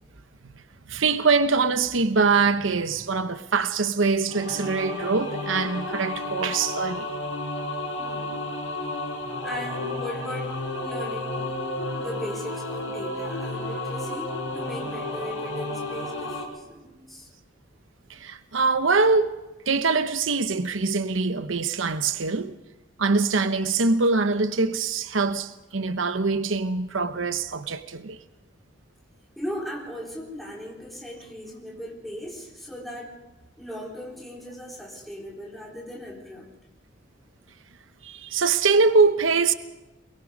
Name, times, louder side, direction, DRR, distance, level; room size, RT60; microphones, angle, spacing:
voice 1, 0.9-7.1 18.1-19.4 19.7-22.6 23.0-28.2 38.0-39.5, right 4 dB, 90° right, 0.9 m, -23 dB
sound 1, 4.3-16.4, left 2 dB, 80° left, 5.2 m, -32 dB
voice 2, 7.8-8.4 9.4-11.5 12.0-17.3 29.4-33.2 33.6-36.5, equal, ahead, 4.0 m, -38 dB
23.0 x 21.0 x 5.2 m
head